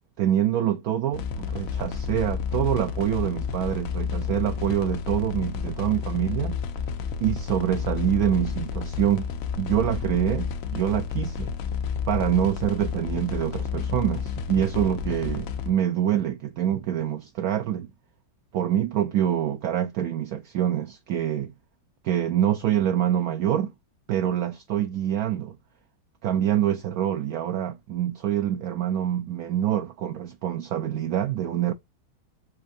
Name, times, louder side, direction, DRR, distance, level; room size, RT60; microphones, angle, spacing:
voice 1, 0.2-6.6 7.2-9.3 9.6-11.5 12.1-17.9 18.5-21.5 22.0-23.7 24.1-25.6 26.2-31.7, right 11 dB, 70° right, 0.8 m, -26 dB
sound 1, 1.1-15.7, left 6 dB, 65° left, 0.8 m, -30 dB
7.2 x 2.6 x 2.6 m
omnidirectional pair, 2.1 m